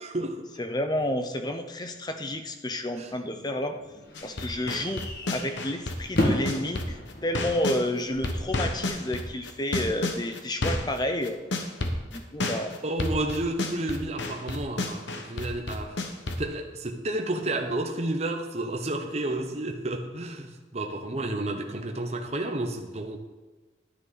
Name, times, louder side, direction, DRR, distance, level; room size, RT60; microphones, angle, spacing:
voice 1, 0.0-0.5 3.0-3.1 12.8-16.0 16.4-23.2, right 2 dB, 35° right, 3 dB, 0.9 m, -31 dB
voice 2, 0.6-3.8 4.2-11.4 12.0-12.7, left 1 dB, 20° left, 7 dB, 0.7 m, -30 dB
sound 1, 2.9-8.9, left 1 dB, 55° left, 2.0 m, -34 dB
sound 2, 4.1-7.8 8.2-16.4, left 2 dB, 80° left, 1.2 m, -31 dB
11.5 x 9.8 x 4.1 m, 1.2 s
head